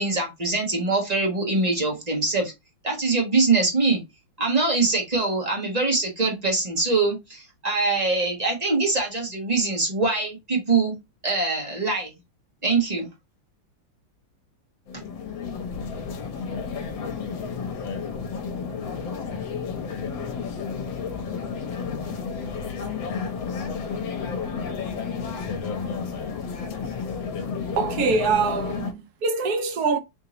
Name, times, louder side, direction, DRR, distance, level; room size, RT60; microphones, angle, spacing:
voice 1, 0.0-2.5 2.8-4.0 4.4-10.9 11.2-12.1 12.6-13.1, right 3 dB, 25° right, 1.2 m, -23 dB
sound 1, 14.9-28.9, left 5 dB, 75° left, 1.6 m, -31 dB
voice 2, 27.8-30.0, right 4 dB, 60° right, 1.1 m, -24 dB
3.8 x 2.8 x 3.8 m
omnidirectional pair, 2.1 m